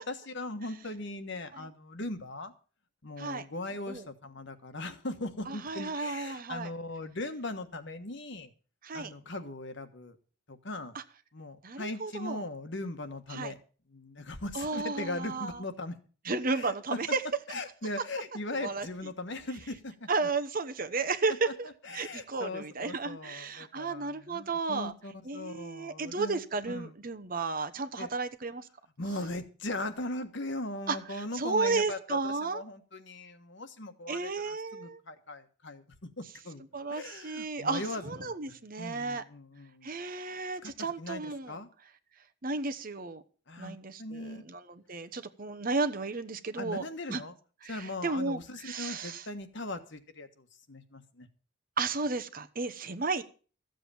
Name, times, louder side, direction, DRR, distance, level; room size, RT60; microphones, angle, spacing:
voice 1, 0.0-2.5 3.0-8.5 8.9-10.2 10.5-11.0 11.3-13.6 13.9-16.0 16.5-17.0 17.5-20.3 21.8-26.9 28.0-28.1 29.0-36.6 36.9-39.9 40.6-41.7 43.5-44.4 46.6-47.3 47.7-51.3, left 2 dB, 55° left, 8 dB, 1.4 m, -39 dB
voice 2, 5.5-6.7 8.8-9.1 10.9-11.0 11.6-12.4 13.3-13.5 14.5-15.6 16.2-17.2 18.6-18.9 20.1-21.7 21.9-24.9 25.2-28.7 30.9-31.0 31.3-32.6 34.1-35.0 36.7-39.2 39.8-41.6 42.4-43.2 43.6-44.6 44.9-47.2 47.6-49.2 51.8-53.2, right 3 dB, 40° right, 9 dB, 1.0 m, -33 dB
14.0 x 7.9 x 7.0 m, 0.39 s
head